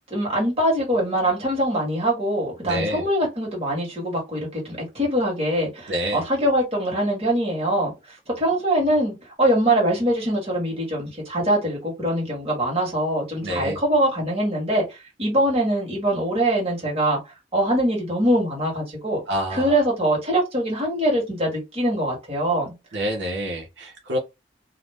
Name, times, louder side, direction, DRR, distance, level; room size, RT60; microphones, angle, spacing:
voice 1, 0.1-17.2 17.5-19.2 19.5-22.7, right 1 dB, 35° right, 1.3 m, -23 dB
voice 2, 2.6-3.0 5.9-6.2 13.4-13.8 19.3-19.8 22.9-24.2, equal, 80° right, 0.8 m, -27 dB
2.4 x 2.1 x 3.2 m
head